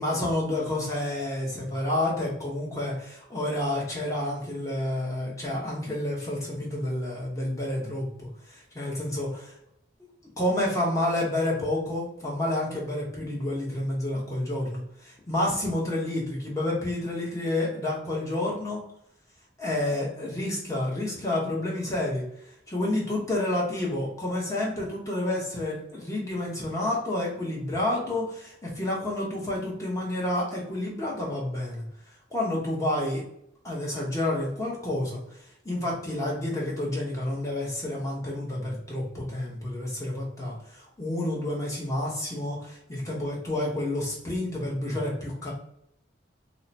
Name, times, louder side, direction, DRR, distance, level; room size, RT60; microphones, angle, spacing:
voice 1, 0.0-9.5 10.4-18.8 19.6-22.2 22.7-31.9 32.3-33.2 33.6-35.2 35.6-45.5, left 1 dB, 15° left, -4 dB, 0.9 m, -29 dB
2.8 x 2.1 x 4.0 m, 0.74 s
head